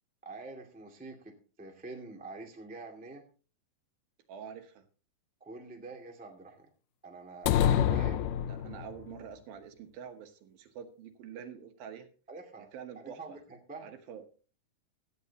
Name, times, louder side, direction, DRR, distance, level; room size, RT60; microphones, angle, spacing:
voice 1, 0.2-3.2 5.4-6.7 7.0-8.2 12.3-12.7 12.9-13.9, right 3 dB, 5° right, 1 dB, 1.2 m, -46 dB
voice 2, 4.3-4.8 8.5-12.1 12.6-13.4 13.8-14.3, right 8 dB, 70° right, 7 dB, 2.9 m, -46 dB
sound 1, 7.5-9.1, left 10 dB, 80° left, 1.9 m, -27 dB
16.0 x 12.5 x 2.9 m, 0.37 s
omnidirectional pair, 4.5 m